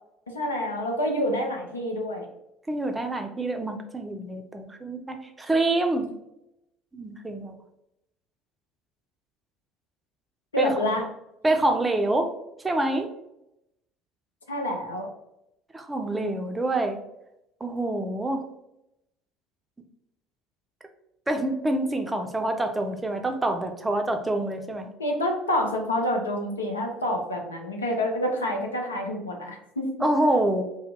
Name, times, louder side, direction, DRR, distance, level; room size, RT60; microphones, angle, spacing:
voice 1, 0.3-2.3 10.5-11.0 14.5-15.1 25.0-30.1, left 1 dB, 85° left, 2 dB, 0.4 m, -27 dB
voice 2, 2.7-6.1 6.9-7.5 10.6-11.0 11.4-12.3 12.6-13.1 15.7-17.0 17.6-18.4 21.3-24.9 30.0-30.6, right 1 dB, 15° right, 5 dB, 0.5 m, -26 dB
2.7 x 2.1 x 3.5 m, 0.83 s
figure-of-eight pair, 60°, 0 cm